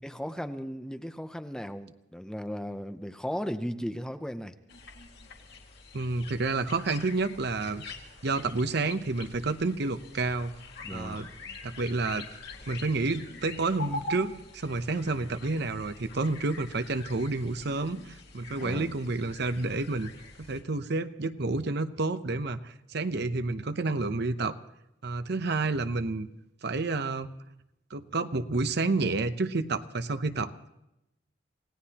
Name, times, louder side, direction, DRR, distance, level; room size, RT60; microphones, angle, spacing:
voice 1, 0.0-4.6 10.8-11.2 18.6-19.0, equal, 5° left, 9 dB, 0.6 m, -36 dB
sound 1, 4.7-20.6, left 3 dB, 65° left, 2.2 m, -45 dB
voice 2, 5.9-7.8 8.2-10.5 10.9-11.3 11.6-12.3 12.7-20.1 20.4-24.6 25.0-26.3 26.6-27.3 27.9-30.5, right 3 dB, 60° right, 10 dB, 0.8 m, -30 dB
27.5 x 17.5 x 2.9 m, 0.86 s
head